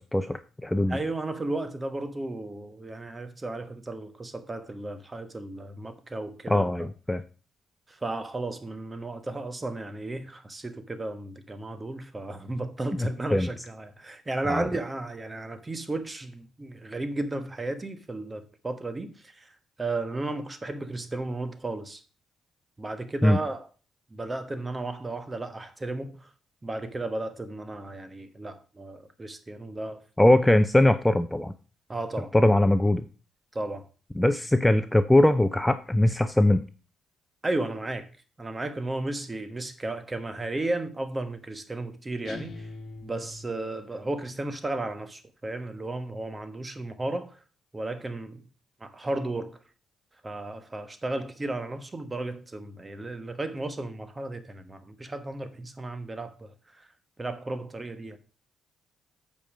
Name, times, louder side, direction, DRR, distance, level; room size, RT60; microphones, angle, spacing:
voice 1, 0.0-1.0 6.5-7.2 12.9-13.5 14.5-14.7 23.2-23.4 30.2-31.5 32.3-33.0 34.2-36.6, left 1 dB, 10° left, 0.5 m, -21 dB
voice 2, 0.9-6.9 7.9-22.0 22.8-23.7 24.1-26.3 26.6-30.0 31.9-32.3 33.5-33.9 37.4-38.1 38.4-42.7 43.0-47.4 47.7-48.4 48.8-49.6 50.2-56.9 57.2-58.2, right 2 dB, 20° right, 1.2 m, -34 dB
sound 1, 42.2-44.0, left 3 dB, 50° left, 1.8 m, -42 dB
8.6 x 5.4 x 5.0 m
cardioid pair, 90°, 0 cm